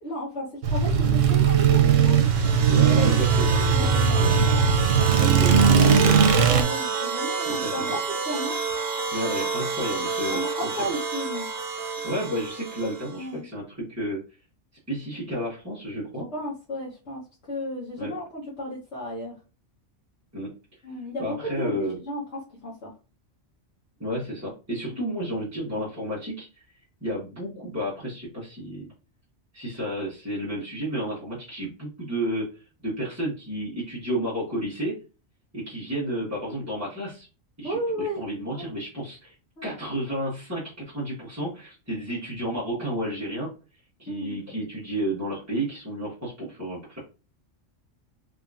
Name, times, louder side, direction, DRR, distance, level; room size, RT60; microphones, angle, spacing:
voice 1, 0.0-2.1 3.7-5.2 6.6-8.0 8.2-8.6 9.9-10.0 10.3-11.5 13.1-13.4 16.3-17.2 17.5-19.3 20.8-22.9 25.0-25.2 37.6-38.2 38.5-38.7 39.6-39.7 44.1-44.4, equal, 65° left, -6 dB, 1.3 m, -34 dB
sound 1, 0.6-6.6, right 6 dB, 85° right, 1.0 m, -19 dB
sound 2, 2.0-13.3, right 6 dB, 60° right, 0.9 m, -30 dB
voice 2, 2.7-3.9 4.2-4.3 5.2-6.2 7.4-7.9 9.1-10.9 12.0-14.2 14.9-16.3 18.0-18.1 20.3-20.5 21.2-22.0 24.0-26.6 27.0-28.9 29.5-34.9 35.5-37.3 37.6-39.3 39.6-43.5 44.0-47.0, equal, 15° right, -9 dB, 1.3 m, -31 dB
3.8 x 3.0 x 2.5 m, 0.33 s
omnidirectional pair, 1.3 m